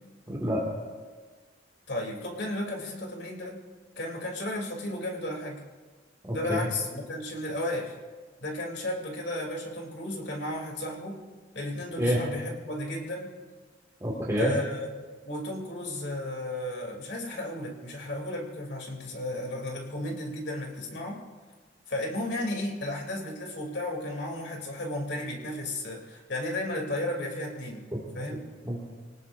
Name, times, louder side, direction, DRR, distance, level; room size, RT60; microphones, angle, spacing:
voice 1, 0.3-0.6 6.3-6.7 12.0-12.2 14.0-14.5 28.7-28.8, equal, 20° right, -5 dB, 2.3 m, -27 dB
voice 2, 1.9-3.6 3.9-5.6 6.3-7.9 8.4-11.2 11.5-13.3 14.4-14.8 15.2-21.2 21.9-27.9 28.1-28.4, left 1 dB, 70° left, 0 dB, 3.4 m, -34 dB
26.0 x 18.5 x 2.7 m, 1.4 s
head